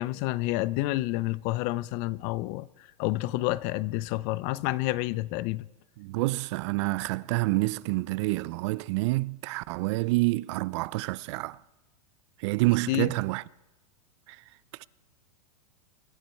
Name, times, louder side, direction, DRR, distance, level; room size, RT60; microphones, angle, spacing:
voice 1, 0.0-2.7 3.0-5.7 12.9-13.1, left 18 dB, 40° left, 0.4 m, -29 dB
voice 2, 6.0-11.6 12.4-13.4 14.3-14.4 14.8-14.9, right 22 dB, 50° right, 0.4 m, -28 dB
24.5 x 10.0 x 4.5 m
hypercardioid pair, 130°, 20 cm